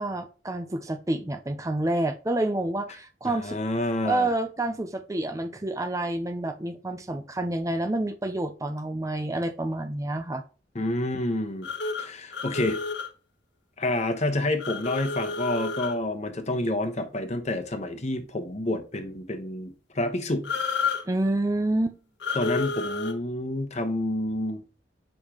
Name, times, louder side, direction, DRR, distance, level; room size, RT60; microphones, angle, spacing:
voice 1, 0.0-3.6 4.0-10.4 21.1-22.0, right 1 dB, 20° right, 0.5 m, -28 dB
voice 2, 3.3-4.3 10.7-11.7 12.0-12.8 13.8-20.4 22.3-24.6, left 1 dB, 40° left, 1.1 m, -28 dB
sound 1, 11.6-13.1 14.6-16.0 20.4-21.0 22.2-23.1, left 4 dB, 80° left, 1.2 m, -30 dB
6.9 x 5.4 x 3.0 m
head